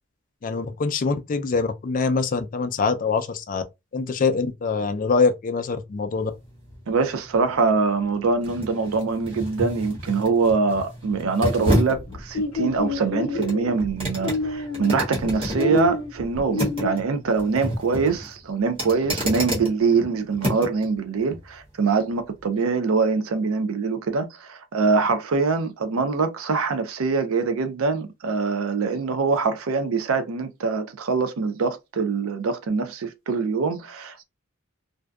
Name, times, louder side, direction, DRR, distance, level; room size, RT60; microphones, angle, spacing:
voice 1, 0.4-3.6 3.9-6.3, left 4 dB, 40° left, 0.4 m, -24 dB
sound 1, 6.2-20.9 21.3-21.4, equal, 25° right, 1.0 m, -31 dB
voice 2, 6.9-34.2, right 4 dB, 75° right, 0.4 m, -24 dB
sound 2, 11.9-17.0, left 3 dB, 85° left, 0.7 m, -28 dB
2.6 x 2.2 x 2.2 m
head